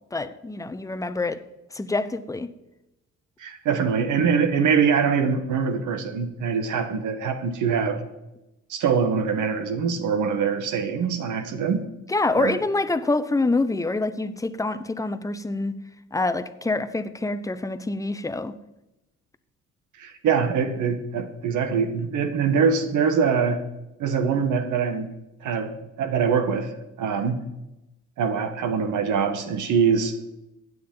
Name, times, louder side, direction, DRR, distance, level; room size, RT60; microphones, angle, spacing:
voice 1, 0.1-1.4 1.7-2.5 12.1-15.7 16.1-18.6, left 2 dB, 10° left, 0.8 m, -26 dB
voice 2, 3.4-8.0 8.7-11.8 12.4-12.6 20.0-23.6 24.0-25.1 25.4-25.7 26.0-27.4 28.2-30.2, right 6 dB, 85° right, 1.4 m, -23 dB
16.0 x 9.5 x 3.9 m
cardioid pair, 90°, 30 cm